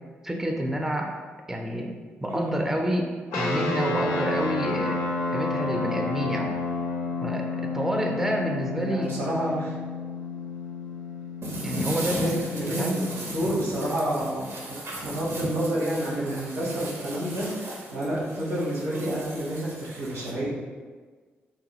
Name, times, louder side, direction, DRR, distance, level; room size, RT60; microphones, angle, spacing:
voice 1, 0.2-1.1 1.5-1.9 2.2-5.0 5.3-6.5 7.2-9.2 11.6-12.2 12.8-13.0, right 1 dB, 5° right, 1 dB, 0.4 m, -28 dB
sound 1, 3.3-14.0, left 3 dB, 85° left, 0.4 m, -31 dB
voice 2, 8.7-9.7 11.9-20.5, right 1 dB, 85° right, -7 dB, 1.0 m, -29 dB
sound 2, 11.4-20.3, right 1 dB, 65° right, 0.6 m, -36 dB
2.9 x 2.2 x 2.9 m, 1.5 s
supercardioid pair, 45°, 5 cm